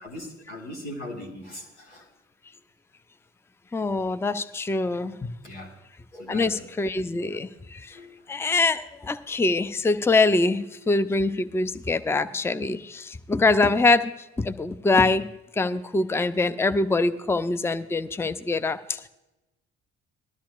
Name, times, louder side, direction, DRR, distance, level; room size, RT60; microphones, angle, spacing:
voice 1, 0.0-2.1 5.4-5.7 6.1-6.7 7.9-8.1, left 1 dB, 90° left, -2 dB, 1.9 m, -39 dB
voice 2, 3.7-5.3 6.3-8.0 8.3-14.1 14.4-15.3 15.5-19.1, left 3 dB, 10° left, 12 dB, 0.5 m, -24 dB
19.0 x 13.0 x 2.4 m, 1.0 s
figure-of-eight pair, 40°, 33 cm